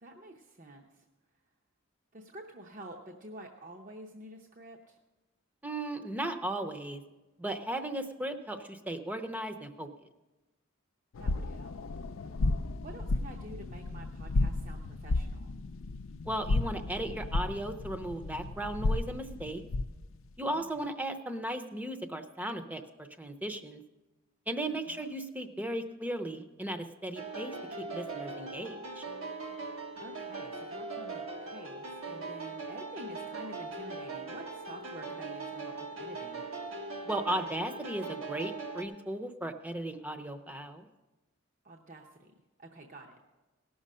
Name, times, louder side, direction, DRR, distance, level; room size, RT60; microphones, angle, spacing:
voice 1, 0.0-1.0 2.1-5.0 11.2-11.8 12.8-15.5 20.5-20.9 24.9-25.1 30.0-36.4 41.6-42.3 42.6-43.2, right 1 dB, 40° right, 1 dB, 0.8 m, -49 dB
voice 2, 5.6-7.0 7.4-9.9 16.2-19.6 20.4-23.8 24.5-29.0 37.1-40.9, right 1 dB, 10° right, 8 dB, 0.6 m, -36 dB
sound 1, 11.1-20.0, left 2 dB, 85° left, 0.5 m, -33 dB
sound 2, 27.2-38.8, right 3 dB, 85° right, 1.6 m, -40 dB
18.0 x 6.3 x 5.5 m, 1.1 s
head